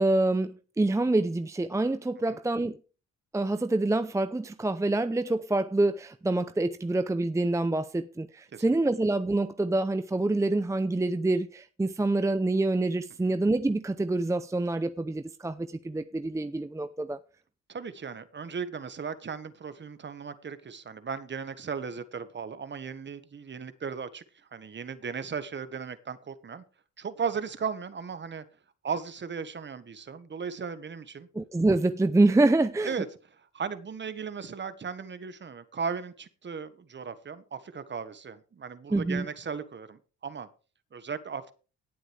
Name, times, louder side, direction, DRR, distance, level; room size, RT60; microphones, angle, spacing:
voice 1, 0.0-2.8 3.3-17.2 31.3-32.9 38.9-39.3, right 2 dB, 10° right, 0.6 m, -26 dB
voice 2, 17.7-24.2 24.5-26.6 27.0-28.4 28.8-31.3 32.8-33.1 33.5-40.5 40.9-41.5, right 6 dB, 40° right, 1.4 m, -36 dB
17.5 x 7.8 x 3.4 m
cardioid pair, 90°, 30 cm